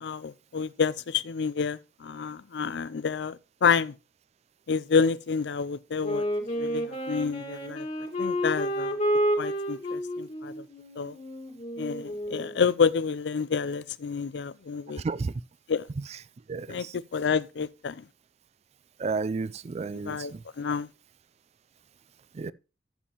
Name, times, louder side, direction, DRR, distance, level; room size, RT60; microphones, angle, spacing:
voice 1, 0.0-3.9 4.7-6.2 6.6-7.9 8.2-9.0 9.4-10.6 11.0-11.1 11.8-15.0 15.7-15.9 16.7-16.9 17.1-18.0 20.1-20.9, left 6 dB, 70° left, 0.4 m, -28 dB
Wind instrument woodwind instrument, 6.0-12.6, equal, 40° left, 1.9 m, -30 dB
voice 2, 16.5-16.9 19.0-20.2 22.4-22.5, right 4 dB, 35° right, 0.3 m, -31 dB
12.5 x 7.3 x 3.0 m
head